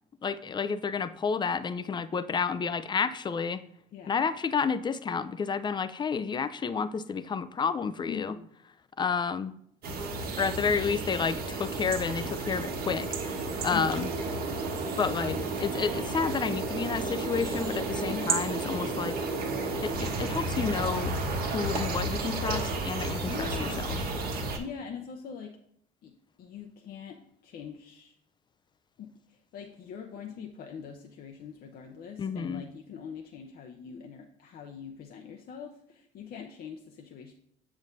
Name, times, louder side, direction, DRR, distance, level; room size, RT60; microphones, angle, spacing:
voice 1, 0.2-3.6 4.1-8.4 9.0-9.5 10.4-13.1 13.6-14.1 15.0-19.2 19.8-21.1 21.5-24.0 32.2-32.6, left 5 dB, 25° left, 13 dB, 0.5 m, -30 dB
voice 2, 8.1-8.5 13.7-14.1 18.1-19.0 21.6-22.0 23.2-25.6 26.0-26.1 26.4-28.1 29.0-37.3, left 7 dB, 55° left, 2 dB, 0.8 m, -43 dB
sound 1, 9.8-24.6, right 3 dB, 55° right, 1.4 m, -32 dB
7.4 x 7.0 x 2.6 m, 0.69 s
supercardioid pair, 80°, 19 cm